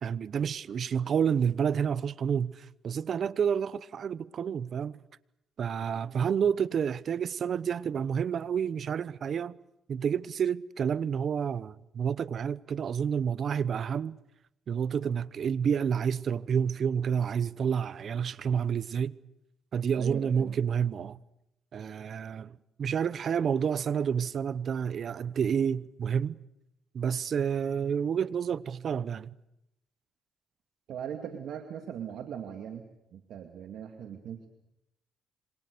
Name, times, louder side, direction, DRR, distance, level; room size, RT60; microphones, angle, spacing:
voice 1, 0.0-5.0 5.6-9.6 9.9-14.2 14.7-19.1 19.7-21.2 21.7-26.4 26.9-29.3, right 7 dB, 55° right, 0.9 m, -29 dB
voice 2, 20.0-20.6 30.9-32.9 33.1-34.5, right 8 dB, 75° right, 2.3 m, -39 dB
27.5 x 26.0 x 6.8 m
cardioid pair, 90°, 0 cm